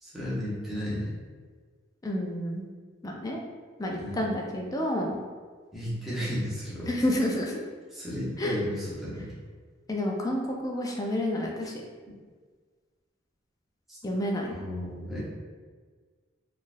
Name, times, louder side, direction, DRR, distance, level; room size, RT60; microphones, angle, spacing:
voice 1, 0.0-1.1 3.9-4.2 5.7-6.9 7.9-9.3 13.9-14.0 14.5-15.2, equal, ahead, -9 dB, 0.9 m, -33 dB
voice 2, 2.0-2.7 3.0-3.4 3.8-5.2 6.9-7.6 8.4-8.6 9.9-11.7 14.0-14.5, left 1 dB, 20° left, 0 dB, 0.3 m, -29 dB
3.7 x 2.4 x 2.5 m, 1.5 s
head